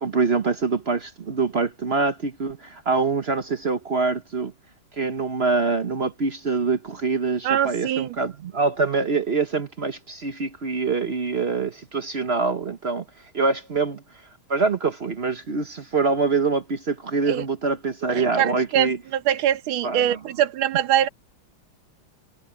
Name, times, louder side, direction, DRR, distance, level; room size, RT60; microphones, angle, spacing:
voice 1, 0.0-4.5 4.9-14.0 14.5-19.0 19.8-20.2, right 4 dB, 45° right, 0.9 m, -25 dB
voice 2, 7.4-8.2 17.3-17.4 18.1-21.1, right 11 dB, 85° right, 1.7 m, -23 dB
omnidirectional pair, 2.2 m